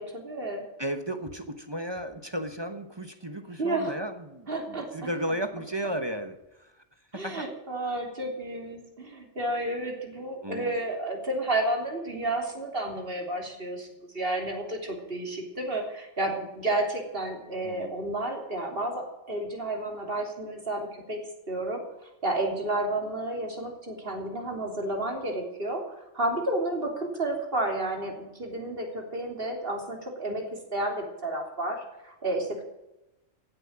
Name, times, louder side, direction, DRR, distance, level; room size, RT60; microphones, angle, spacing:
voice 1, 0.0-0.6 3.6-4.0 4.5-4.9 7.1-13.9 14.1-21.2 21.5-25.8 26.1-32.6, right 1 dB, 45° right, 2 dB, 3.5 m, -31 dB
voice 2, 0.8-6.8 7.1-7.5 10.4-10.8 17.6-17.9, right 1 dB, 20° right, 8 dB, 1.1 m, -34 dB
16.5 x 7.7 x 8.9 m, 0.94 s
omnidirectional pair, 1.3 m